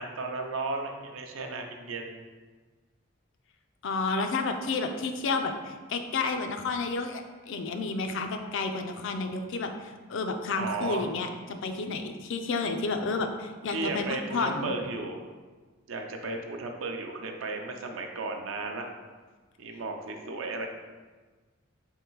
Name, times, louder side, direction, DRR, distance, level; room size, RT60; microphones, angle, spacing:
voice 1, 0.0-2.3 10.6-11.1 13.7-15.2 15.9-18.9 19.6-20.7, right 3 dB, 70° right, 3 dB, 0.6 m, -34 dB
voice 2, 3.8-14.7, left 3 dB, 65° left, 6 dB, 0.4 m, -31 dB
3.7 x 3.1 x 4.5 m, 1.4 s
head